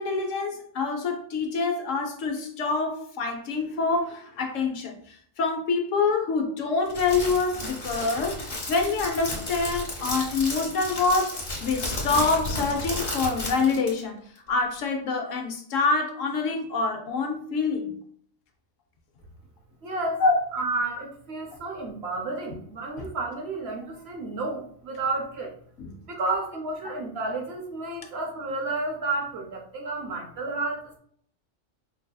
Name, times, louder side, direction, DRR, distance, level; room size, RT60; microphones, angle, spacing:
voice 1, 0.0-8.4 8.7-11.3 11.6-14.2 14.5-17.9 20.2-20.4 23.0-23.1 25.8-25.9, left 4 dB, 70° left, 3 dB, 1.1 m, -26 dB
Crackle, 6.9-14.0, left 1 dB, 40° left, 1.4 m, -33 dB
voice 2, 19.8-20.2 20.5-25.5 26.1-31.0, right 3 dB, 60° right, 2 dB, 0.8 m, -31 dB
5.2 x 2.7 x 2.3 m, 0.63 s
omnidirectional pair, 1.4 m